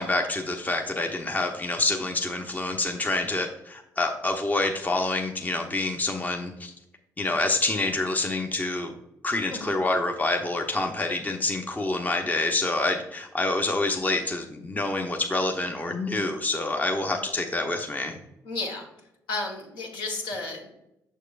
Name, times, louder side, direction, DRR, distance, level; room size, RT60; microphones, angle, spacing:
voice 1, 0.0-6.7 7.2-8.9 9.2-18.2, left 2 dB, 20° left, 3 dB, 0.8 m, -27 dB
voice 2, 18.4-18.8 19.3-20.7, left 3 dB, 65° left, 0 dB, 1.6 m, -32 dB
6.6 x 6.5 x 2.5 m, 0.85 s
hypercardioid pair, 45°, 9 cm